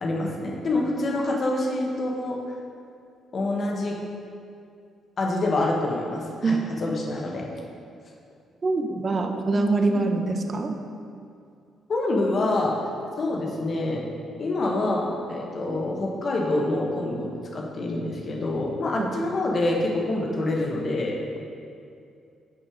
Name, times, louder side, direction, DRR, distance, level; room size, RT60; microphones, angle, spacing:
voice 1, 0.0-2.4 3.3-4.0 5.2-7.4 9.9-10.0 11.9-12.7 13.2-14.0 14.4-21.2, left 2 dB, 45° left, -1 dB, 1.1 m, -26 dB
voice 2, 8.6-10.8 19.0-19.1, right 3 dB, 40° right, 5 dB, 0.6 m, -24 dB
5.7 x 5.3 x 5.0 m, 2.5 s
cardioid pair, 90°, 0 cm